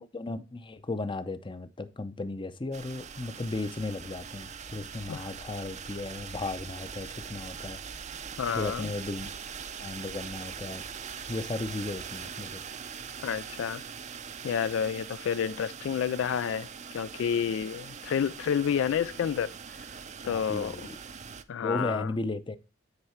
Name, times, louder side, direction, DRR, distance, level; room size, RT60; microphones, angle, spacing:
voice 1, 0.0-7.8 8.6-9.3 9.8-10.8 11.3-12.7 20.2-21.0 21.6-22.6, left 2 dB, 25° left, 0.6 m, -35 dB
sound 1, 2.7-21.4, right 6 dB, 35° right, 0.5 m, -42 dB
voice 2, 8.4-8.9 13.2-13.8 14.4-16.7 16.9-19.5 20.2-20.8 21.5-22.1, left 8 dB, 75° left, 0.3 m, -29 dB
9.6 x 4.6 x 4.3 m
head